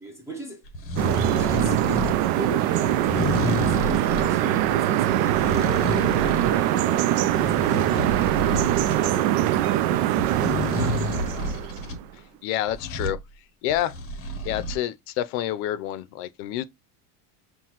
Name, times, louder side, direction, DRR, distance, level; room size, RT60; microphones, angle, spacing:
voice 1, 0.0-0.7 1.3-5.7 6.0-8.3 8.8-11.6, left 1 dB, 5° right, 0.6 m, -39 dB
sound 1, 0.6-2.2 2.9-4.3 5.0-6.6 7.0-9.0 10.2-12.0 12.7-13.2 13.7-14.8, left 1 dB, 30° left, 0.7 m, -30 dB
sound 2, 1.0-12.0, right 13 dB, 70° right, 0.6 m, -23 dB
voice 2, 12.4-13.2 13.6-13.9 14.4-16.6, left 12 dB, 75° left, 0.6 m, -28 dB
5.8 x 2.3 x 2.9 m
cardioid pair, 155°, 49 cm